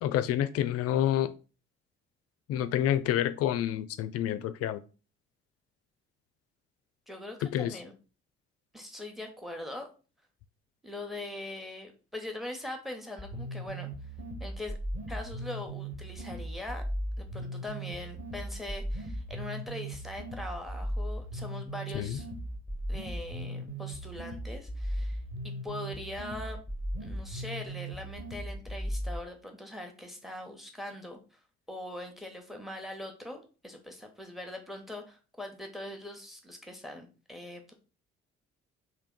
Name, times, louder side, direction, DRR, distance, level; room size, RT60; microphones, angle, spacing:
voice 1, 0.0-1.3 2.5-4.8 7.5-7.8 21.9-22.2, left 11 dB, 45° left, 12 dB, 0.4 m, -28 dB
voice 2, 7.1-7.9 8.7-9.9 10.8-13.9 14.4-14.8 15.1-16.8 17.2-22.3 22.9-26.6 27.0-31.2 31.7-37.7, left 1 dB, ahead, 4 dB, 1.0 m, -42 dB
sound 1, 13.2-29.2, right 1 dB, 20° right, 1.4 m, -37 dB
3.5 x 2.7 x 3.6 m, 0.34 s
figure-of-eight pair, 40°, 34 cm